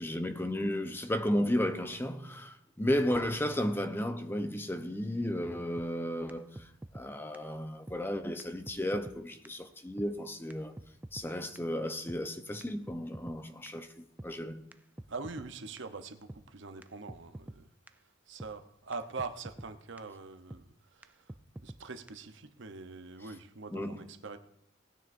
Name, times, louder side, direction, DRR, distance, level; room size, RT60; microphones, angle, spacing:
voice 1, 0.0-6.7 6.9-10.7 11.1-14.6 23.7-24.1, left 1 dB, 10° left, 0.7 m, -33 dB
sound 1, 5.8-5.9 6.3-6.4 6.6-7.1 7.3-7.4 7.9-8.0 8.4-8.5 8.7-9.2 9.4-9.5 10.0-10.1 10.5-10.6 10.8-11.3 11.6-11.7 12.1-12.2 12.6-13.4 13.7-13.8 14.2-14.3 14.7-14.8 15.0-15.5 15.8-15.9 16.3-16.4 16.8-16.9 17.1-17.6 17.9-18.0 18.4-18.5 18.9-19.0 19.2-19.7 20.0-20.1 20.5-20.6 21.0-21.1 21.3-21.8 22.1-22.2, right 1 dB, 10° right, 0.3 m, -46 dB
voice 2, 15.1-17.7 18.3-20.6 20.9-21.1 21.6-24.4, right 4 dB, 65° right, 0.8 m, -43 dB
18.0 x 9.6 x 2.6 m
head